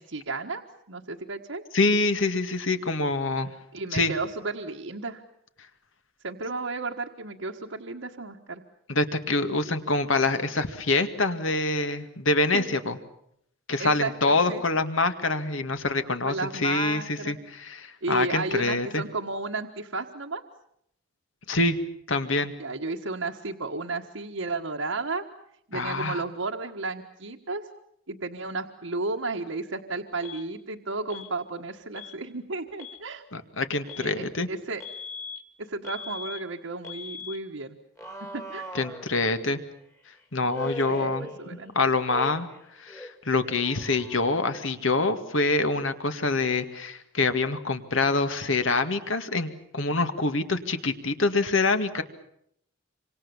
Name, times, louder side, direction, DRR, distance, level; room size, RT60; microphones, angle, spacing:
voice 1, 0.0-1.6 3.7-5.2 6.2-8.6 12.5-12.6 13.8-14.6 16.2-17.4 18.0-20.4 22.6-25.2 25.7-27.7 28.1-33.2 34.0-34.8 35.6-37.8 38.3-38.7 40.9-41.9, right 3 dB, 80° right, 1 dB, 1.5 m, -33 dB
voice 2, 1.7-3.5 3.9-4.1 8.9-13.0 13.7-19.0 21.5-21.8 22.1-22.5 25.7-26.2 33.3-34.5 38.7-39.6 40.3-41.3 41.8-42.5 42.8-52.0, left 3 dB, 75° left, 9 dB, 2.1 m, -25 dB
Alarm, 30.2-30.4 31.1-31.3 31.9-32.2 32.7-33.0 33.9-34.1 34.8-35.4 35.8-36.4 36.8-37.4 38.0-39.5 40.5-41.7 42.0-42.6 42.9-44.6, left 2 dB, 15° left, 2.0 m, -40 dB
27.5 x 25.5 x 7.2 m, 0.73 s
head